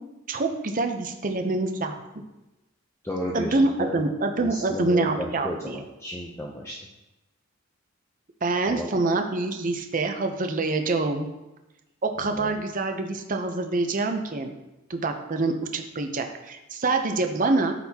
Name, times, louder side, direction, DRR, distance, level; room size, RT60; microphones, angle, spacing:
voice 1, 0.3-2.2 3.3-5.8 8.4-11.3 12.0-14.5 14.9-17.7, right 3 dB, 40° right, 5 dB, 0.7 m, -26 dB
voice 2, 3.0-4.0 4.4-6.7 8.7-9.0 12.2-12.6, left 1 dB, 15° left, -3 dB, 0.6 m, -33 dB
12.0 x 4.2 x 2.9 m, 0.99 s
head